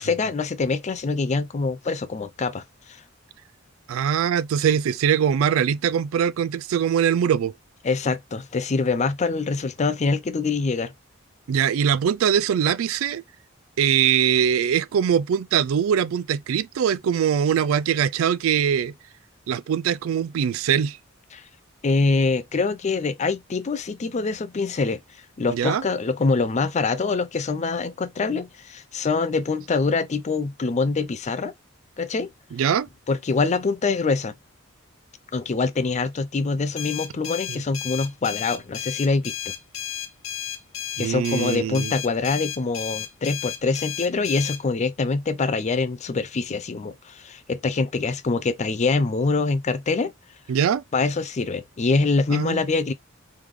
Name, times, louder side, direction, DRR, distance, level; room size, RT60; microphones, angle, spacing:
voice 1, 0.0-3.0 7.8-10.9 21.3-21.4 21.8-25.0 25.4-31.5 32.0-32.3 33.1-34.3 35.3-39.5 41.0-50.1 50.9-52.9, left 4 dB, 35° left, 0.4 m, -24 dB
voice 2, 3.9-7.5 11.5-13.2 13.8-18.9 19.5-21.0 25.5-25.8 32.5-32.9 37.5-37.6 41.0-41.9 50.5-50.8 52.3-52.6, right 8 dB, 80° right, 0.3 m, -22 dB
sound 1, 36.8-44.6, left 9 dB, 80° left, 0.9 m, -33 dB
3.5 x 3.4 x 3.1 m
head